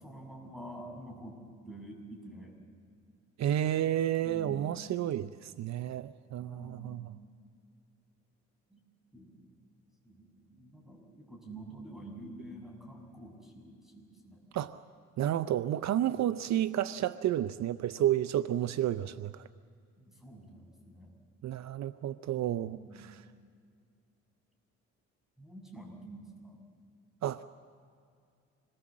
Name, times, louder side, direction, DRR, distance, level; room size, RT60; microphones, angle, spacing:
voice 1, 0.0-1.4 1.6-2.5 4.2-4.9 6.4-7.1 8.7-8.8 9.1-9.5 10.0-14.4 16.1-16.3 20.0-21.1 22.3-23.1 25.4-26.6, right 1 dB, ahead, 1 dB, 6.6 m, -48 dB
voice 2, 3.4-7.1 14.5-14.8 15.2-19.4 21.4-23.2 27.2-27.4, right 11 dB, 65° right, 13 dB, 0.6 m, -31 dB
27.0 x 21.5 x 7.4 m, 2.2 s
cardioid pair, 90°, 30 cm